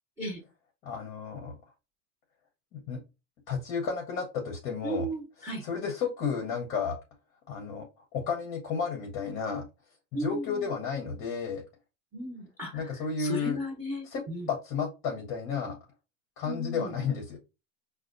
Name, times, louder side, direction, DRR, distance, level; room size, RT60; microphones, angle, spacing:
voice 1, 0.8-1.6 2.7-3.0 3.5-5.1 5.6-7.0 7.5-7.9 8.1-9.6 10.1-11.6 12.7-13.6 14.0-14.2 14.5-15.8 16.4-17.4, left 6 dB, 30° left, 2 dB, 0.6 m, -32 dB
voice 2, 4.8-5.6 10.1-10.6 12.1-12.9 13.2-14.5 16.4-16.9, right 1 dB, 5° right, -2 dB, 0.7 m, -35 dB
4.8 x 2.2 x 2.4 m, 0.28 s
supercardioid pair, 140°, 44 cm